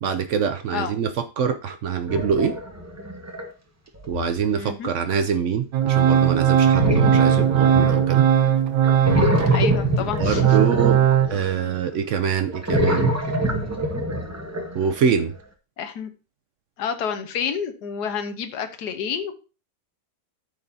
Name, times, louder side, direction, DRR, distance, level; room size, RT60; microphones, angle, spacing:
voice 1, 0.0-2.5 4.1-8.3 9.4-9.6 10.2-11.0 11.3-13.2 14.7-15.3, right 7 dB, 70° right, 9 dB, 0.7 m, -24 dB
sound 1, 2.1-3.4 4.0-4.4 6.7-8.5 8.8-11.7 12.5-15.0, right 1 dB, 15° right, 0.7 m, -24 dB
voice 2, 4.5-4.9 9.5-10.7 15.8-16.1 16.8-19.3, left 7 dB, 75° left, 8 dB, 1.5 m, -29 dB
Organ, 5.7-9.5 10.0-11.3, right 9 dB, 90° right, 1.4 m, -18 dB
12.5 x 4.7 x 2.7 m, 0.33 s
omnidirectional pair, 1.8 m